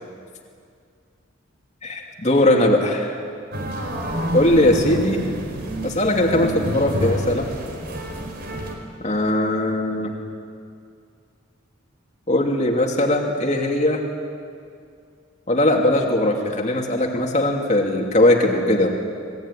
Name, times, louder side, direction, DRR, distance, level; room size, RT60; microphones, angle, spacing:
voice 1, 1.8-3.1 4.3-5.3 5.8-7.5 9.0-10.1 12.3-14.0 15.5-18.9, left 1 dB, 35° left, 1 dB, 2.7 m, -19 dB
sound 1, 3.5-8.7, equal, 50° right, 4.2 m, -28 dB
27.0 x 19.5 x 10.0 m, 2.3 s
head